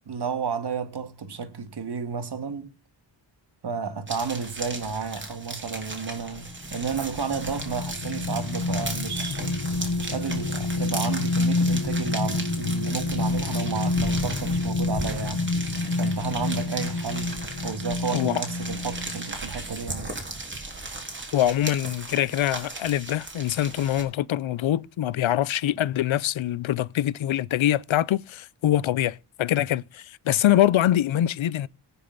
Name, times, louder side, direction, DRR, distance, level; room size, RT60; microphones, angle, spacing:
voice 1, 0.1-2.7 3.6-9.6 10.0-15.5 15.9-20.1, right 6 dB, 55° right, 2.1 m, -32 dB
sound 1, 4.1-24.0, right 2 dB, 25° right, 3.8 m, -36 dB
sound 2, 6.4-19.3 19.8-20.0, left 3 dB, 45° left, 1.0 m, -28 dB
voice 2, 21.3-31.7, left 12 dB, 85° left, 0.7 m, -24 dB
18.0 x 6.9 x 4.0 m
wide cardioid pair, 150°, 46 cm